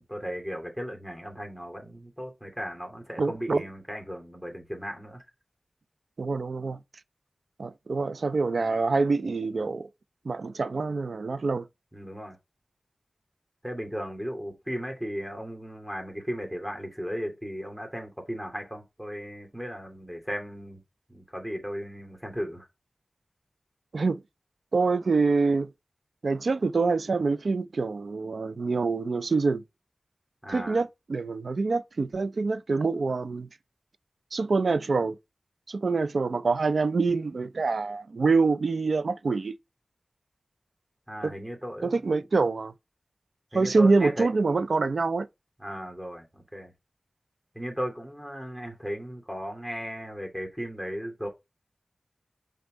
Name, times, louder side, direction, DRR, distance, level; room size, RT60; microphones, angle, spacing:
voice 1, 0.0-5.2 11.9-12.4 13.6-20.8 21.1-22.6 30.4-30.8 41.1-42.2 43.5-44.3 45.6-46.2 46.5-46.7 47.5-51.3, equal, 10° right, 2.6 m, -36 dB
voice 2, 3.2-3.6 6.2-6.8 7.6-9.9 10.2-11.7 23.9-24.2 24.7-25.7 26.2-29.6 30.5-33.5 34.3-35.2 35.7-39.6 41.2-41.3 41.8-42.7 43.5-45.3, right 4 dB, 85° right, 0.4 m, -25 dB
5.4 x 3.6 x 5.1 m
cardioid pair, 45°, 0 cm